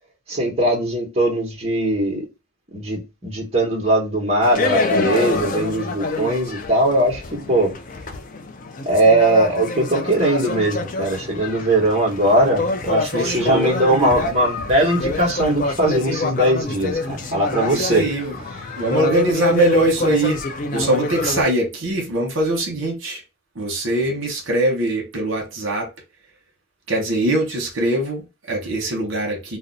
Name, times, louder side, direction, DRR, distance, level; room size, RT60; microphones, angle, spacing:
voice 1, 0.3-2.3 2.7-7.7 8.8-18.0, right 1 dB, 30° right, 1.1 m, -20 dB
sound 1, 4.4-21.4, left 3 dB, 40° left, 0.4 m, -26 dB
voice 2, 13.1-13.7 17.7-18.3 18.7-20.4 20.7-23.2 23.5-25.9 26.9-29.6, right 1 dB, 65° right, 1.0 m, -22 dB
2.6 x 2.1 x 3.9 m
head